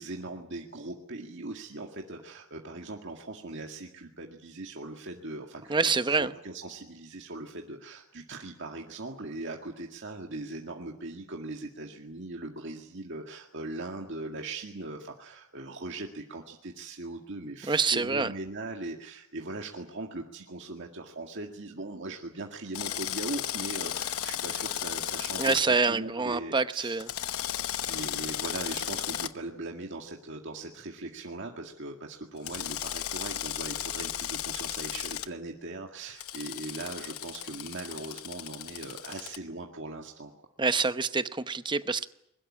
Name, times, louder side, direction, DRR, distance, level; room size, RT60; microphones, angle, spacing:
voice 1, 0.0-27.0 27.8-40.3, right 2 dB, 55° right, 1 dB, 2.0 m, -40 dB
voice 2, 5.7-6.3 17.6-18.3 25.4-27.1 40.6-42.1, right 4 dB, 20° right, 11 dB, 0.9 m, -26 dB
Drill, 22.7-25.6 27.0-29.3 32.4-35.3 36.2-39.4, left 10 dB, 75° left, 1.0 m, -35 dB
22.0 x 20.0 x 10.0 m, 0.79 s
head